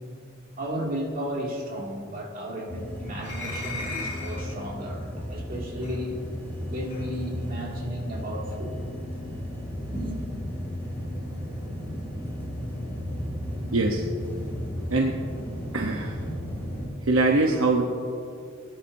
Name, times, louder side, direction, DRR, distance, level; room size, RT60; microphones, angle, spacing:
voice 1, 0.6-6.1 6.7-8.7 9.9-10.2, equal, 40° right, -2 dB, 2.3 m, -33 dB
sound 1, 2.7-16.9, equal, 10° left, 3.1 m, -34 dB
sound 2, 3.2-4.5 5.8-6.0 6.9-7.1, left 3 dB, 35° left, 2.6 m, -36 dB
voice 2, 13.7-14.0 14.9-15.1 15.7-16.2 17.0-17.8, right 2 dB, 65° right, 1 dB, 0.9 m, -22 dB
21.0 x 10.5 x 2.7 m, 2.5 s
head